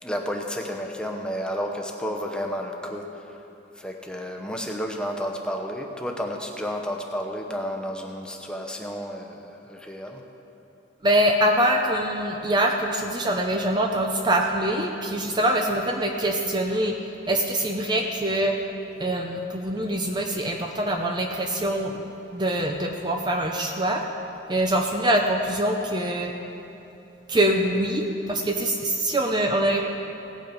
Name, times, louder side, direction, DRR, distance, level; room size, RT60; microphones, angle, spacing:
voice 1, 0.0-3.3 3.8-10.2, equal, 5° left, 2 dB, 0.9 m, -31 dB
voice 2, 11.0-16.9 17.3-18.5 19.0-22.0 22.3-24.0 24.5-26.3 27.3-29.9, right 1 dB, 25° right, 2 dB, 0.6 m, -24 dB
17.0 x 8.3 x 5.2 m, 3.0 s
head